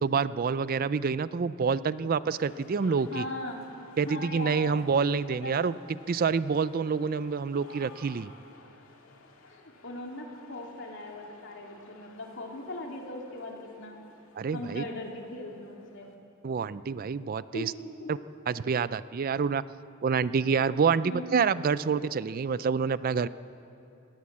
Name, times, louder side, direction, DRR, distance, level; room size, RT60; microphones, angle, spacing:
voice 1, 0.0-3.2 4.0-5.7 6.1-8.3 14.4-14.8 16.4-17.7 18.1-18.2 18.5-19.6 20.0-23.3, right 5 dB, 45° right, 16 dB, 0.4 m, -27 dB
sound 1, 2.3-16.2, left 2 dB, 80° left, 2.2 m, -56 dB
voice 2, 3.1-3.6 4.0-4.9 5.3-5.6 9.5-13.9 14.5-16.1 17.5-17.7 18.0-18.1 21.0-21.3, left 1 dB, 60° left, 0 dB, 2.9 m, -39 dB
19.5 x 18.0 x 7.4 m, 2.8 s
head